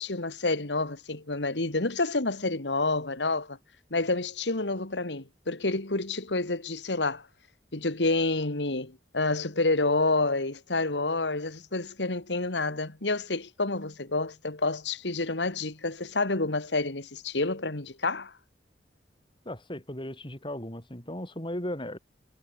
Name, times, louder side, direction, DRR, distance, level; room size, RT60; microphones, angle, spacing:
voice 1, 0.0-3.6 3.9-7.2 7.7-18.3, left 2 dB, 90° left, 2.3 m, -28 dB
voice 2, 19.5-22.0, left 1 dB, 30° left, 7.4 m, -36 dB
head